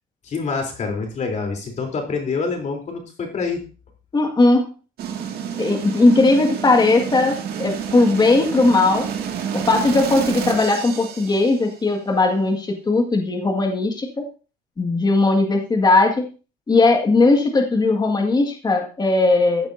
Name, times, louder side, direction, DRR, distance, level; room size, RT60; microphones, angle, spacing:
voice 1, 0.2-3.7, left 4 dB, 45° left, 3 dB, 3.5 m, -26 dB
voice 2, 4.1-4.7 5.6-9.1 9.5-14.3 14.8-16.3 16.7-19.7, left 3 dB, 25° left, 3 dB, 1.9 m, -18 dB
sound 1, 5.0-11.9, right 7 dB, 70° right, 2.1 m, -29 dB
14.5 x 8.7 x 2.7 m, 0.35 s
cardioid pair, 110°, 17 cm